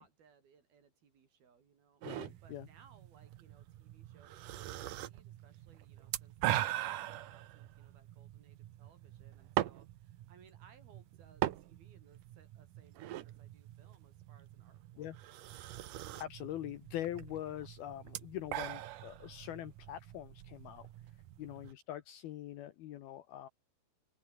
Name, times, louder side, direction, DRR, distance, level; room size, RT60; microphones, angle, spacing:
voice 1, 0.0-2.0 2.4-15.5 21.4-21.7, right 6 dB, 55° right, 5.3 m, -65 dB
voice 2, 2.0-2.7 15.0-15.2 15.5-15.6 16.2-20.9 21.4-23.5, left 12 dB, 70° left, 2.6 m, -43 dB
sound 1, 2.0-21.7, right 13 dB, 75° right, 1.9 m, -42 dB
open air
omnidirectional pair, 5.3 m